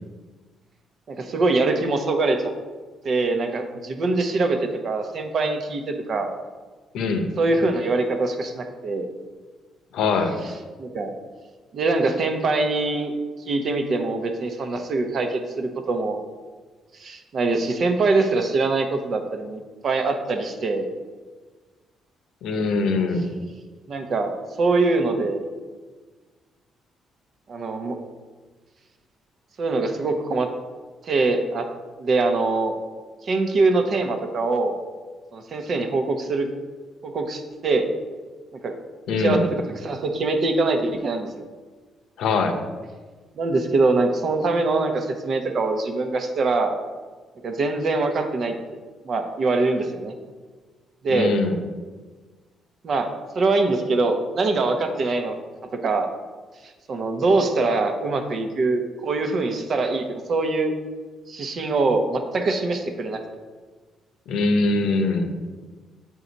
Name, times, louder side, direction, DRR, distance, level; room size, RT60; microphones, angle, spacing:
voice 1, 1.1-2.5 3.0-6.3 7.4-9.1 10.8-11.1 11.7-13.1 13.5-16.2 17.0-20.9 23.9-25.5 27.5-28.0 29.6-30.5 31.0-31.7 32.0-32.8 33.2-34.8 35.3-36.5 37.0-37.9 38.6-38.7 39.2-41.5 43.4-46.7 47.4-48.8 49.0-50.1 51.0-51.3 52.8-55.4 55.7-56.1 56.9-60.7 61.3-63.2, right 3 dB, 55° right, 6 dB, 0.8 m, -23 dB
voice 2, 6.9-7.3 9.9-10.3 22.4-23.3 39.1-39.4 42.2-42.6 51.1-51.6 64.3-65.3, left 3 dB, 85° left, 5 dB, 0.8 m, -22 dB
7.4 x 4.8 x 4.0 m, 1.4 s
cardioid pair, 90°, 0 cm